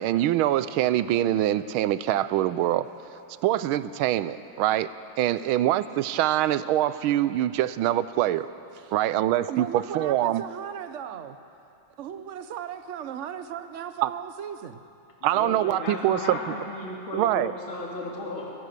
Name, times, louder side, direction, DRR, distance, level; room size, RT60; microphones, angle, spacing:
voice 1, 0.0-2.9 3.4-4.9 5.2-8.5 8.9-10.4 14.0-14.1 15.2-16.4 17.1-17.5, right 13 dB, 90° right, 15 dB, 1.5 m, -24 dB
voice 2, 9.5-11.4 12.0-14.8, right 9 dB, 55° right, 10 dB, 0.8 m, -36 dB
voice 3, 15.2-18.5, left 2 dB, 80° left, -2 dB, 3.1 m, -35 dB
23.5 x 16.5 x 6.6 m, 2.8 s
omnidirectional pair, 2.2 m